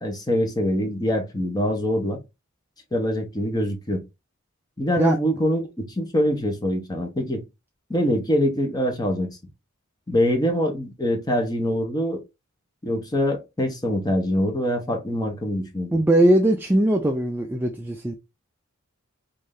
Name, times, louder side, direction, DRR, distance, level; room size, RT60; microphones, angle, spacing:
voice 1, 0.0-2.2 2.9-4.0 4.8-7.4 7.9-9.4 10.1-12.2 12.8-16.0, equal, 20° left, 0.8 m, -24 dB
voice 2, 15.9-18.1, right 1 dB, 10° right, 0.4 m, -20 dB
3.2 x 2.6 x 3.7 m
head